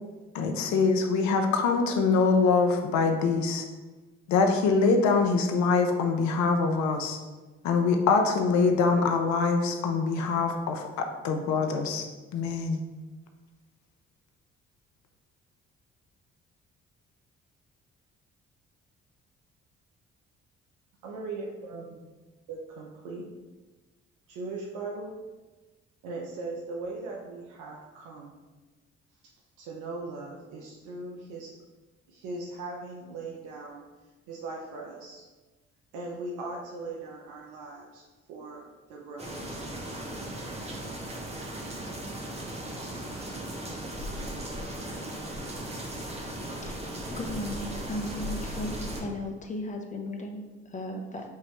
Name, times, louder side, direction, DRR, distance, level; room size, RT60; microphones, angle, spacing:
voice 1, 0.3-3.7 4.3-7.2 7.6-12.1 12.3-12.8, left 4 dB, 70° left, 5 dB, 0.6 m, -24 dB
voice 2, 21.0-22.0 22.5-23.3 24.3-25.1 26.0-28.3 29.6-31.5 32.1-33.8 34.3-35.2 35.9-38.0 38.3-38.6 38.9-39.6, right 3 dB, 80° right, -2 dB, 0.7 m, -39 dB
sound 1, 39.2-49.0, right 1 dB, 20° right, 1.1 m, -37 dB
voice 3, 46.3-51.3, left 1 dB, 25° left, 2 dB, 0.9 m, -36 dB
5.5 x 3.0 x 3.1 m, 1.2 s
hypercardioid pair, 50°, 31 cm